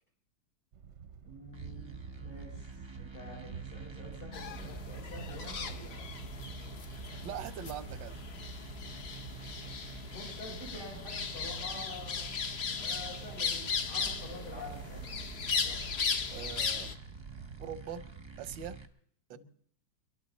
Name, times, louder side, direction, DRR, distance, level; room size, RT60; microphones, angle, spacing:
sound 1, 0.7-18.8, right 7 dB, 55° right, 0.8 m, -49 dB
voice 1, 1.2-2.7 3.0-6.1 10.1-12.2 12.8-15.3 15.6-15.8 19.3-19.4, left 2 dB, 75° left, -4 dB, 7.3 m, -47 dB
sound 2, 1.5-18.9, right 3 dB, 25° right, 0.7 m, -50 dB
sound 3, 4.3-16.9, left 5 dB, 50° left, 0.8 m, -37 dB
voice 2, 7.2-8.2 16.3-17.0 17.6-18.1 18.4-18.8 19.3-19.4, right 9 dB, 90° right, 12 dB, 1.5 m, -42 dB
26.0 x 12.0 x 4.2 m, 0.62 s
omnidirectional pair, 1.9 m